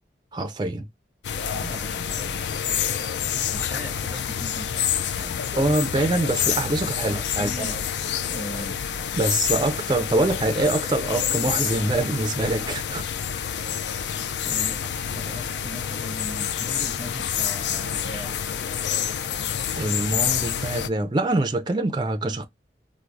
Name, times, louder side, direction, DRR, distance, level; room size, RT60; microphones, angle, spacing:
voice 1, 0.3-0.9 5.5-7.8 9.1-13.0 19.8-22.5, right 2 dB, 25° right, 0.3 m, -24 dB
sound 1, 1.2-20.9, left 8 dB, 80° left, 0.4 m, -28 dB
voice 2, 1.5-2.5 3.5-5.5 7.1-7.8 8.3-8.8 14.4-18.4, equal, 50° left, 2.3 m, -39 dB
4.5 x 2.0 x 2.4 m
head